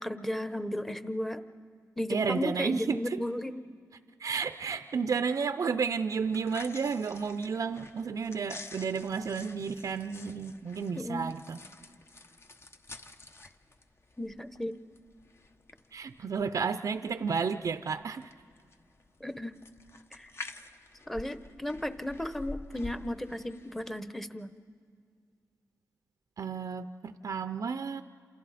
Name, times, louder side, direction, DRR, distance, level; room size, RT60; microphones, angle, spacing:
voice 1, 0.0-1.4 2.0-3.6 11.0-11.3 14.2-14.8 19.2-19.6 20.1-20.3 21.1-24.5, left 1 dB, 5° left, 11 dB, 1.0 m, -35 dB
voice 2, 2.1-3.2 4.2-11.6 15.9-18.3 26.4-28.0, right 5 dB, 55° right, 10 dB, 0.5 m, -32 dB
sound 1, 6.2-24.0, left 2 dB, 40° left, 1.1 m, -49 dB
28.5 x 28.0 x 4.2 m, 2.2 s
cardioid pair, 75°, 7 cm